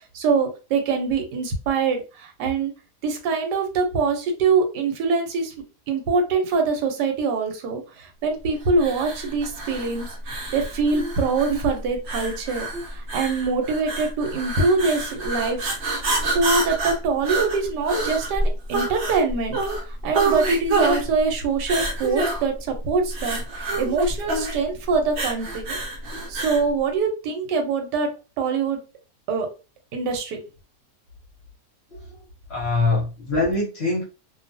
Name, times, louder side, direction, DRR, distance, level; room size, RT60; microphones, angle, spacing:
voice 1, 0.1-2.7 3.0-5.5 5.9-10.1 10.5-15.7 16.2-19.6 19.8-25.8 26.3-28.1 28.4-28.8 29.3-29.5 29.9-30.4, right 4 dB, 85° right, 4 dB, 1.3 m, -24 dB
sound 1, 8.8-26.7, right 2 dB, 55° right, 0.8 m, -27 dB
voice 2, 32.5-34.0, left 2 dB, 50° left, -2 dB, 0.9 m, -23 dB
2.7 x 2.3 x 2.5 m, 0.32 s
omnidirectional pair, 1.8 m